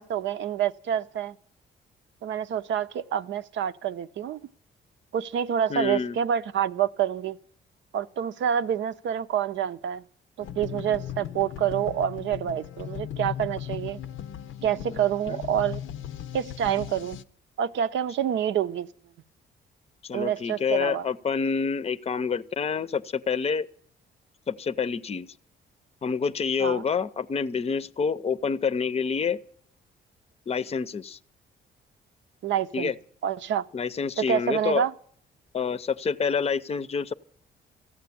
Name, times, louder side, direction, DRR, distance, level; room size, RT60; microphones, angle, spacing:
voice 1, 0.0-1.4 2.2-4.4 5.1-7.4 7.9-10.0 10.4-14.0 14.6-15.8 16.3-17.2 17.6-18.9 20.1-21.1 26.6-26.8 32.4-32.9 33.2-33.6 34.2-34.9, right 9 dB, 70° right, 0.7 m, -27 dB
voice 2, 5.7-6.2 14.9-15.0 15.3-15.4 20.0-23.6 24.5-25.3 26.0-29.4 30.5-31.2 32.7-32.9 33.7-34.8 35.5-37.1, left 5 dB, 30° left, 0.6 m, -27 dB
sound 1, 10.4-17.2, left 10 dB, 80° left, 0.6 m, -37 dB
15.0 x 8.9 x 8.4 m
cardioid pair, 90°, 20 cm